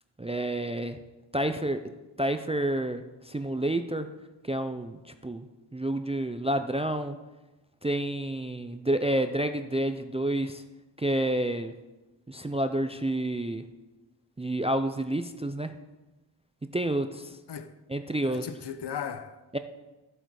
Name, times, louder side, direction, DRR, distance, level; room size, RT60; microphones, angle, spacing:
voice 1, 0.2-1.0 1.3-1.9 2.2-4.1 4.4-5.5 5.7-7.2 7.8-10.6 11.0-11.7 12.3-13.6 14.4-15.7 16.7-17.4 17.9-18.4 19.5-19.6, right 1 dB, 15° right, 0.3 m, -29 dB
voice 2, 17.5-17.8 18.2-19.6, left 8 dB, 65° left, 0.8 m, -37 dB
13.0 x 7.7 x 4.7 m
wide cardioid pair, 180°, 44 cm